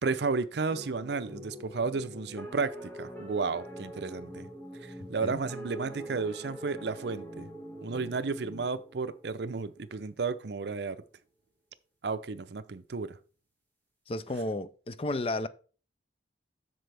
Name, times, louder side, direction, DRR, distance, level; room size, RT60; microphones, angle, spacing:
voice 1, 0.0-4.5 4.8-7.5 7.8-11.0 12.0-13.2, right 4 dB, 65° right, 0.6 m, -33 dB
sound 1, 0.7-9.9, equal, 10° left, 1.8 m, -44 dB
voice 2, 14.1-15.5, left 2 dB, 30° left, 0.4 m, -32 dB
7.7 x 6.7 x 3.4 m
head